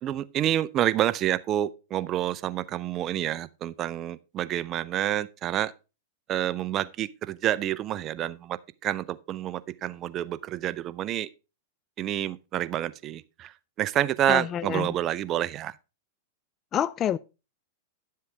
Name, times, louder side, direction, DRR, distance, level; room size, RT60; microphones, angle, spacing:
voice 1, 0.0-5.7 6.3-11.3 12.0-13.5 13.8-15.7, right 12 dB, 35° right, 0.5 m, -28 dB
voice 2, 14.3-14.9 16.7-17.2, left 10 dB, 30° left, 0.4 m, -27 dB
11.0 x 7.5 x 3.4 m
hypercardioid pair, 120°, 0 cm